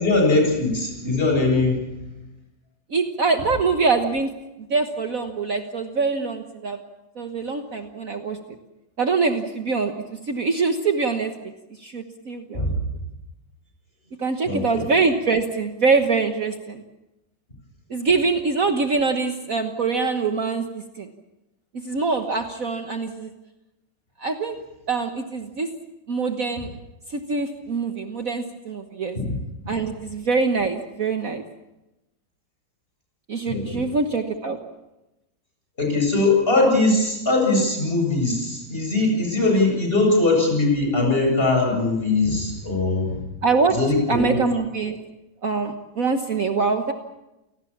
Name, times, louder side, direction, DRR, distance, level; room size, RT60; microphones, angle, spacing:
voice 1, 0.0-1.8 12.5-12.7 14.4-14.8 29.1-29.4 33.5-33.8 35.8-43.2 43.7-44.4, left 2 dB, 30° left, 0 dB, 8.2 m, -21 dB
voice 2, 2.9-4.3 4.7-6.8 7.2-8.4 9.0-9.9 10.3-11.5 11.8-12.8 14.2-16.8 17.9-21.1 21.8-23.3 24.2-24.6 24.9-25.7 26.1-26.7 27.1-29.1 29.7-31.5 33.3-34.6 43.4-43.8 44.1-45.0 45.4-46.9, right 4 dB, 50° right, 6 dB, 1.6 m, -24 dB
28.5 x 19.0 x 7.3 m, 0.95 s
omnidirectional pair, 2.0 m